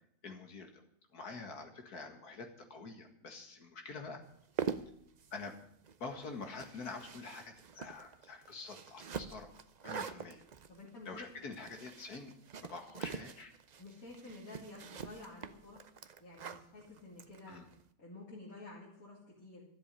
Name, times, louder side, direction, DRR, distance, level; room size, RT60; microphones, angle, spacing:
voice 1, 0.2-0.8 1.1-4.2 5.3-5.6 6.0-9.5 9.8-10.4 11.1-12.3 12.6-13.5 17.5-17.6, left 4 dB, 85° left, 5 dB, 2.4 m, -46 dB
sound 1, 4.3-17.8, right 6 dB, 55° right, 0.5 m, -45 dB
voice 2, 10.7-11.1 13.8-15.8 16.2-17.6 18.0-19.7, left 2 dB, 65° left, -6 dB, 3.7 m, -51 dB
12.5 x 7.7 x 9.7 m, 0.70 s
omnidirectional pair, 1.6 m